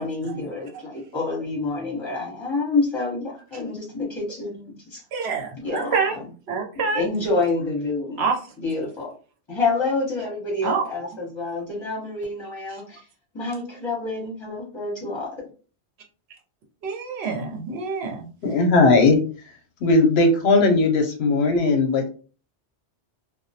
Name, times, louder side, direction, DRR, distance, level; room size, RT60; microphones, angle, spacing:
voice 1, 0.0-5.0 5.6-6.0 6.9-8.2 8.6-9.1 9.5-13.0 13.3-15.3, left 3 dB, 25° left, -5 dB, 1.0 m, -27 dB
voice 2, 5.1-6.2 6.5-7.0 8.2-8.5 10.6-10.9 12.7-12.8 16.8-18.3, right 5 dB, 75° right, 1 dB, 0.9 m, -26 dB
voice 3, 18.4-19.2 19.8-22.1, left 3 dB, 70° left, 4 dB, 0.8 m, -18 dB
2.2 x 2.1 x 2.7 m, 0.37 s
omnidirectional pair, 1.1 m